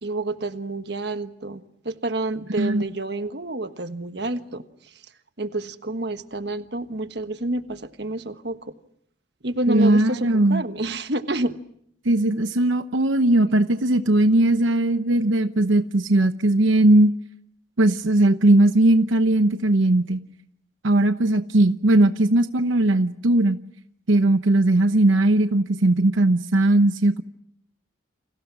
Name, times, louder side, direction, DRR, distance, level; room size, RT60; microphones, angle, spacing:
voice 1, 0.0-4.9 5.4-8.6 9.4-11.5, right 2 dB, 60° right, 9 dB, 1.4 m, -29 dB
voice 2, 9.7-10.6 12.0-17.1 17.8-20.2 20.8-23.6 24.1-27.2, right 1 dB, 85° right, 9 dB, 1.0 m, -18 dB
29.5 x 27.5 x 6.1 m, 0.72 s
head